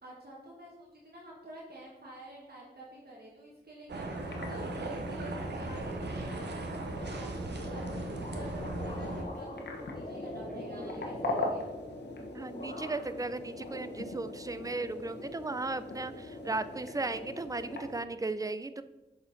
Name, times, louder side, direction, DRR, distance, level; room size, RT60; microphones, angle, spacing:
voice 1, 0.0-4.2 4.5-11.6, right 1 dB, 65° right, -5 dB, 1.4 m, -49 dB
sound 1, 3.9-9.2, right 2 dB, 85° right, 0.8 m, -38 dB
sound 2, 4.1-18.0, left 2 dB, 85° left, 1.0 m, -41 dB
sound 3, 6.9-12.2 12.5-13.2 13.6-14.5, left 1 dB, 50° left, 1.3 m, -44 dB
voice 2, 10.7-11.0 12.3-18.8, right 3 dB, 20° right, 13 dB, 0.4 m, -36 dB
6.5 x 4.4 x 3.9 m, 1.0 s
cardioid pair, 45°, 17 cm